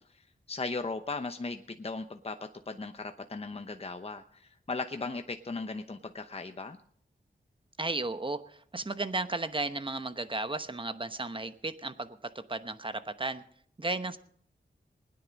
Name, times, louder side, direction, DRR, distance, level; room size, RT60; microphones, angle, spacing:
voice 1, 0.1-2.3 2.7-6.8, left 3 dB, 35° left, 7 dB, 0.8 m, -37 dB
voice 2, 7.8-13.4 13.8-14.2, right 2 dB, 30° right, 11 dB, 1.0 m, -34 dB
20.0 x 10.0 x 5.3 m, 0.63 s
wide cardioid pair, 70°, 18 cm